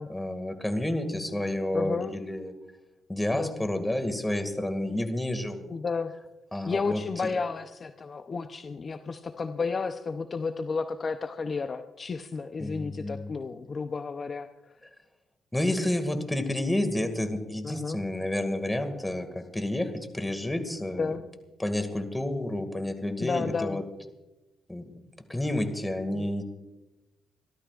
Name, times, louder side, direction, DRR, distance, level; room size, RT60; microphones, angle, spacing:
voice 1, 0.1-2.5 3.1-5.8 6.5-7.0 12.6-13.3 15.5-21.2 21.6-23.8 24.7-24.9 25.3-26.4, left 1 dB, 10° left, 7 dB, 2.0 m, -30 dB
voice 2, 1.7-2.1 3.3-3.5 5.7-6.1 6.7-14.8 17.6-18.0 21.0-21.2 23.2-23.8 26.1-26.3, left 4 dB, 40° left, 7 dB, 0.7 m, -32 dB
28.5 x 13.5 x 2.5 m, 1.0 s
cardioid pair, 90°, 0 cm